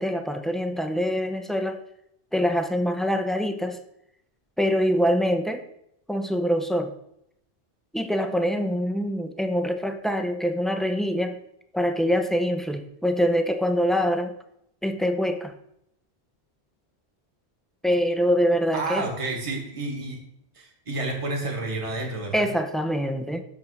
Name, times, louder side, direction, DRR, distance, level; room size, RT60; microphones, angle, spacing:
voice 1, 0.0-1.8 2.3-3.8 4.6-5.6 6.1-6.9 7.9-11.3 11.7-14.3 14.8-15.5 17.8-19.0 22.3-23.4, equal, ahead, 6 dB, 0.4 m, -24 dB
voice 2, 18.7-20.2 20.5-22.5, right 2 dB, 30° right, 0 dB, 1.4 m, -30 dB
6.1 x 6.0 x 6.4 m, 0.76 s
omnidirectional pair, 1.1 m